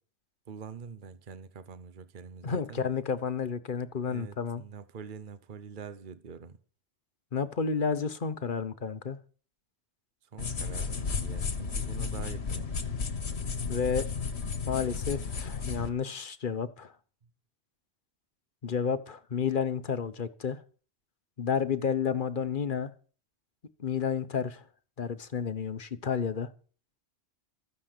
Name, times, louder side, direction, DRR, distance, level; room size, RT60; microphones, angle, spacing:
voice 1, 0.5-2.8 4.1-6.6 10.2-12.7, right 6 dB, 50° right, 1.1 m, -45 dB
voice 2, 2.4-4.6 7.3-9.2 13.7-14.1 14.6-16.9 18.6-20.6 21.4-22.9 23.8-24.6 25.0-26.5, left 6 dB, 50° left, 1.1 m, -31 dB
sound 1, 10.4-15.9, left 5 dB, 65° left, 1.7 m, -33 dB
14.0 x 9.7 x 6.7 m
omnidirectional pair, 1.2 m